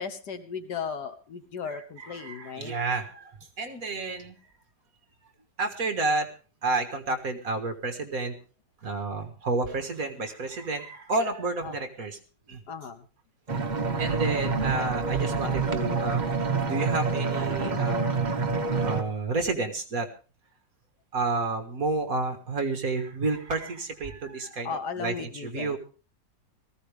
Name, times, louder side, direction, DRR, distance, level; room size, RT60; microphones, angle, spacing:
voice 1, 0.0-2.8 11.6-11.7 12.7-13.0 24.6-25.8, left 6 dB, 65° left, 9 dB, 1.6 m, -36 dB
voice 2, 1.7-4.4 5.6-6.3 6.6-8.4 8.8-12.2 12.5-12.6 14.0-16.3 16.6-18.1 18.8-20.1 21.1-25.8, right 3 dB, 50° right, 6 dB, 2.0 m, -30 dB
sound 1, 13.5-19.0, right 4 dB, 30° right, 1.0 m, -27 dB
18.5 x 15.0 x 3.4 m, 0.36 s
omnidirectional pair, 2.0 m